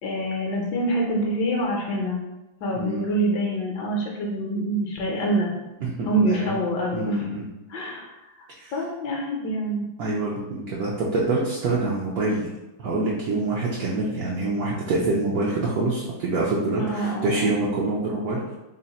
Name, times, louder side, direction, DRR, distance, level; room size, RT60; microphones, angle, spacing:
voice 1, 0.0-2.2 2.6-5.5 6.0-7.3 7.7-8.1 8.7-9.9 16.8-17.7, right 1 dB, 70° left, -1 dB, 1.2 m, -26 dB
voice 2, 2.8-3.1 5.8-6.6 6.9-7.5 8.6-8.7 10.0-12.5 12.8-18.5, right 2 dB, 75° right, -4 dB, 0.8 m, -26 dB
3.8 x 2.1 x 4.0 m, 0.99 s
omnidirectional pair, 2.2 m